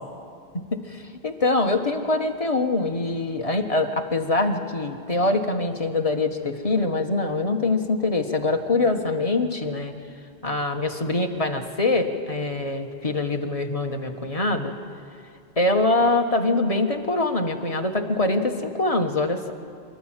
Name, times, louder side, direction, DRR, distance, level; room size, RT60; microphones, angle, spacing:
voice 1, 0.7-9.9 10.4-14.7 15.6-19.5, left 2 dB, 35° left, 4 dB, 1.4 m, -24 dB
25.0 x 12.5 x 9.0 m, 2.3 s
omnidirectional pair, 1.1 m